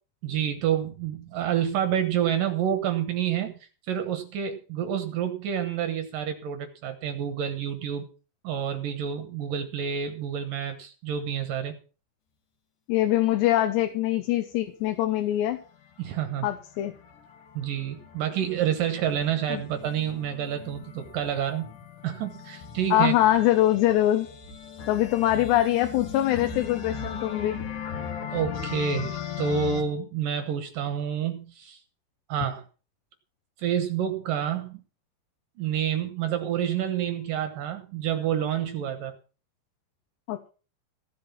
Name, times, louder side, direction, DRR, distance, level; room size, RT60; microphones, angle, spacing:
voice 1, 0.2-3.5 3.9-8.1 8.4-11.7 16.0-16.5 17.5-21.7 22.0-23.2 28.3-31.8 32.3-32.6 33.6-34.8 35.6-39.2, right 9 dB, 65° right, 9 dB, 2.3 m, -28 dB
voice 2, 12.9-15.6 16.4-16.9 19.5-19.6 22.9-24.3 24.9-27.6 40.3-40.5, left 14 dB, 80° left, 7 dB, 3.1 m, -23 dB
sound 1, 16.1-29.8, left 7 dB, 60° left, 2.6 m, -38 dB
15.5 x 7.5 x 5.8 m, 0.35 s
omnidirectional pair, 5.0 m